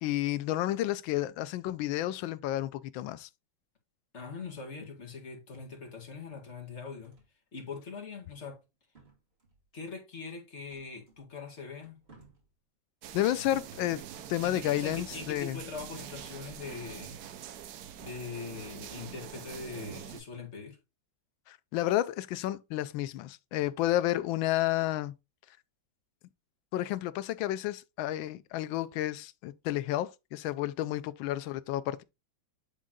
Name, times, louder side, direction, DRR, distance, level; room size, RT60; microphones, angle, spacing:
voice 1, 0.0-3.3 13.1-14.0 14.3-15.6 21.5-25.1 26.7-32.0, left 14 dB, 80° left, 1.3 m, -31 dB
voice 2, 4.1-7.2 7.5-8.6 9.7-12.0 13.5-13.6 14.4-17.2 18.0-20.8, left 5 dB, 35° left, 2.0 m, -42 dB
sound 1, 4.3-4.8 5.6-6.3 7.0-7.3 7.7-7.8 8.3-8.7 8.9-9.7 10.7-11.4 11.8-12.5 13.5-14.3 14.8-15.5 16.0-16.7 17.1-17.3 17.9-18.0 18.4-18.9, right 3 dB, 30° right, 2.5 m, -56 dB
sound 2, 13.0-20.2, right 10 dB, 65° right, 1.0 m, -45 dB
8.8 x 3.7 x 3.7 m
omnidirectional pair, 2.1 m